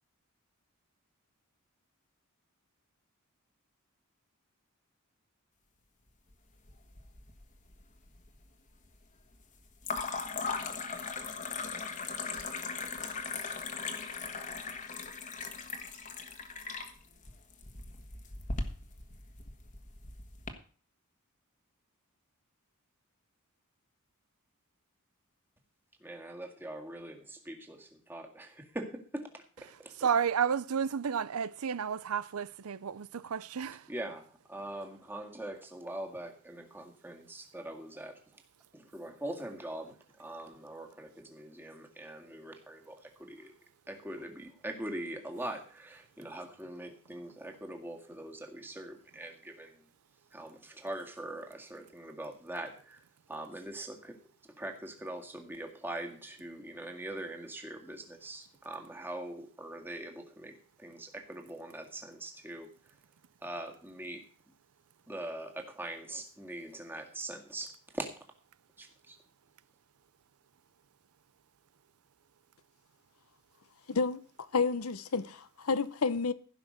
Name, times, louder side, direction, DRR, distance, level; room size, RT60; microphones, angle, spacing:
sound 1, 6.7-7.4 7.7-8.4 9.8-20.5, left 4 dB, 35° left, 1.5 m, -39 dB
voice 1, 26.0-29.4 29.8-29.9 33.9-38.2 38.7-43.5 43.9-49.9 50.3-54.2 54.6-62.7 63.4-64.2 65.1-68.1 68.8-69.2, right 1 dB, 10° right, 2.0 m, -42 dB
voice 2, 29.7-33.9, right 7 dB, 90° right, 0.6 m, -32 dB
voice 3, 73.9-74.2 74.5-76.3, left 4 dB, 85° left, 0.8 m, -30 dB
15.5 x 6.0 x 6.5 m
head